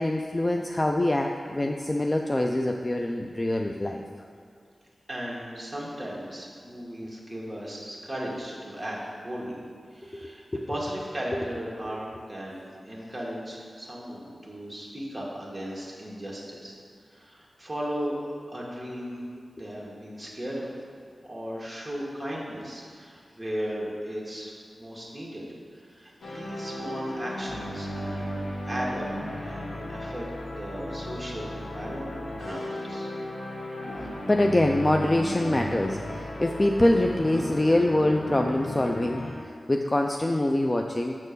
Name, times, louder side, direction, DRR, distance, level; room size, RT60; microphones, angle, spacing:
voice 1, 0.0-4.0 10.1-10.2 10.5-10.7 34.3-39.4 39.7-41.1, left 1 dB, 25° left, 3 dB, 0.3 m, -24 dB
voice 2, 5.1-9.6 9.9-10.4 10.7-16.7 17.1-18.2 18.5-19.2 19.5-20.7 21.2-25.5 25.7-29.1 29.4-33.1, equal, 10° right, -5 dB, 1.6 m, -36 dB
sound 1, 26.2-39.3, left 1 dB, 85° left, 1.2 m, -35 dB
7.2 x 4.3 x 6.7 m, 2.2 s
wide cardioid pair, 120°, 0 cm